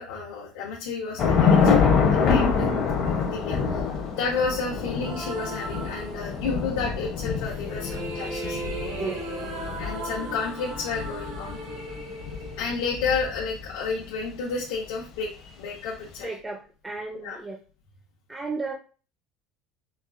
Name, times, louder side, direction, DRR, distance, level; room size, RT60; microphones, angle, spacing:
voice 1, 0.0-2.7 3.0-3.8 4.1-9.2 9.8-11.6 12.6-16.3 17.2-17.4, left 4 dB, 85° left, -5 dB, 0.9 m, -31 dB
Thunder / Rain, 1.2-13.7, left 5 dB, 40° left, 0.6 m, -26 dB
sound 1, 5.0-6.7 7.4-13.5, right 2 dB, 85° right, 1.3 m, -37 dB
voice 2, 9.0-9.3 16.2-17.6 18.3-18.7, right 3 dB, 10° right, 1 dB, 0.4 m, -34 dB
4.2 x 2.4 x 2.4 m, 0.36 s
cardioid pair, 170°, 0 cm